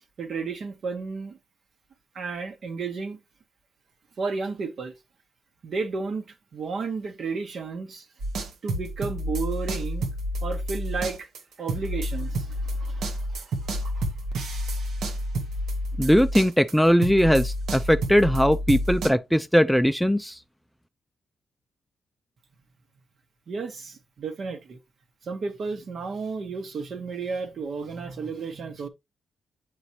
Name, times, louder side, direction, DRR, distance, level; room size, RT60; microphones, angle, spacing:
voice 1, 0.2-1.4 2.1-3.2 4.2-4.9 5.6-6.3 6.5-8.1 8.6-10.1 10.4-11.3 11.6-13.5 13.8-14.1 14.5-14.6 23.5-24.8 25.2-28.9, right 4 dB, 60° right, 1.2 m, -33 dB
sound 1, 8.2-16.7 17.0-19.1, equal, 80° right, 1.2 m, -29 dB
voice 2, 16.0-20.4, equal, ahead, 0.4 m, -20 dB
8.0 x 4.9 x 2.8 m
cardioid pair, 100°, 0 cm